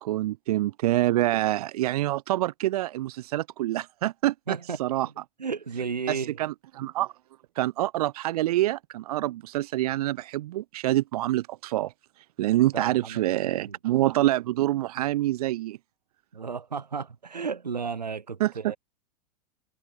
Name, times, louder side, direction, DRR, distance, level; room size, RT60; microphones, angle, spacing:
voice 1, 0.0-4.3 4.8-5.1 6.1-7.1 7.6-15.8 18.4-18.5, right 15 dB, 65° right, 0.5 m, -26 dB
voice 2, 4.5-4.8 5.0-5.1 5.4-6.4 12.7-13.8 16.3-18.8, right 5 dB, 90° right, 4.1 m, -33 dB
hypercardioid pair, 100°, 21 cm